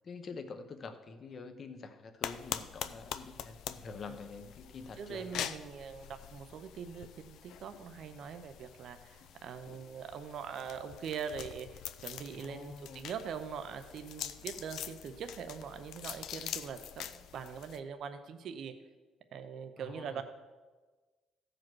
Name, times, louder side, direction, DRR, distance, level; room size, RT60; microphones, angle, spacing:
voice 1, 0.0-5.3 12.3-13.1 19.8-20.2, left 4 dB, 35° left, 9 dB, 0.8 m, -46 dB
sound 1, 2.2-17.8, left 10 dB, 65° left, 0.5 m, -44 dB
voice 2, 5.0-18.7 19.3-20.2, right 7 dB, 50° right, 8 dB, 0.6 m, -42 dB
15.0 x 5.1 x 6.1 m, 1.3 s
cardioid pair, 165°, 0 cm